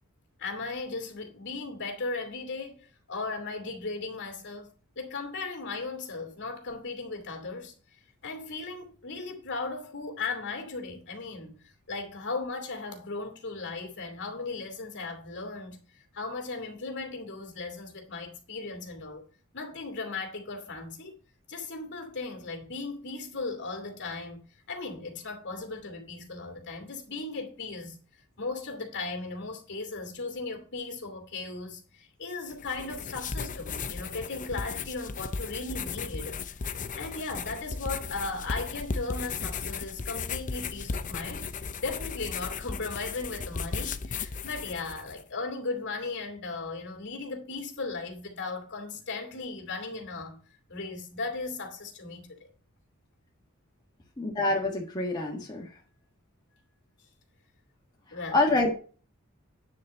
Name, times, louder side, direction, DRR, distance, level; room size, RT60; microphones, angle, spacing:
voice 1, 0.4-4.7 5.0-7.7 8.2-15.8 16.1-19.2 19.5-21.1 21.5-28.0 28.4-41.5 41.8-50.4 50.7-52.5 58.1-58.4, left 3 dB, 55° left, 2.6 m, -37 dB
sound 1, 32.5-45.2, left 5 dB, 35° left, 0.6 m, -36 dB
voice 2, 54.2-55.7 58.3-58.7, left 2 dB, 20° left, 1.5 m, -26 dB
9.6 x 4.2 x 6.8 m
head